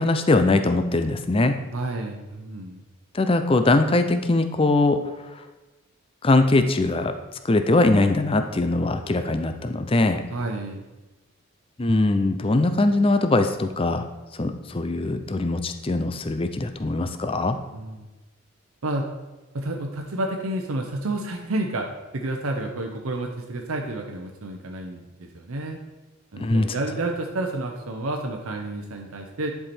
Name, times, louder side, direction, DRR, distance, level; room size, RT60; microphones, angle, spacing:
voice 1, 0.0-1.6 3.1-5.0 6.2-7.1 7.4-10.2 11.8-14.1 14.3-17.6 26.4-26.7, left 2 dB, 25° left, 8 dB, 0.5 m, -21 dB
voice 2, 1.7-2.8 10.3-10.8 17.7-18.1 18.8-19.1 19.5-21.9 22.1-25.8 26.3-29.5, right 2 dB, 75° right, 2 dB, 0.8 m, -30 dB
10.5 x 4.7 x 4.3 m, 1.1 s
head